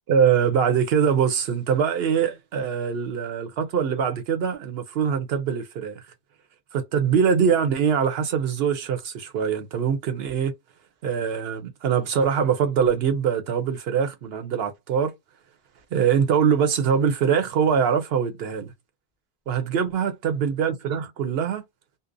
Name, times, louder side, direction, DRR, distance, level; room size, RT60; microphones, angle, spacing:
voice 1, 0.1-6.0 6.7-10.5 11.0-15.1 15.9-18.7 19.5-21.6, right 7 dB, 75° right, 0.9 m, -23 dB
2.6 x 2.1 x 2.5 m
omnidirectional pair, 1.1 m